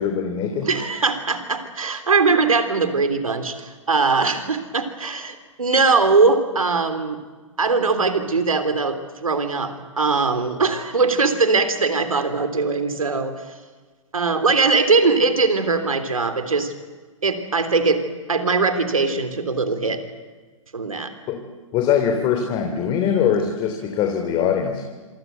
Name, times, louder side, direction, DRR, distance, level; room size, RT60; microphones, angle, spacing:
voice 1, 0.0-0.7 21.3-21.4 21.7-24.8, left 8 dB, 30° left, 4 dB, 3.1 m, -22 dB
voice 2, 0.6-7.2 7.6-13.4 14.1-16.7 17.2-18.0 18.3-20.0 20.7-21.1, right 4 dB, 85° right, 9 dB, 3.4 m, -21 dB
27.0 x 25.0 x 8.2 m, 1.4 s
figure-of-eight pair, 120°, 17 cm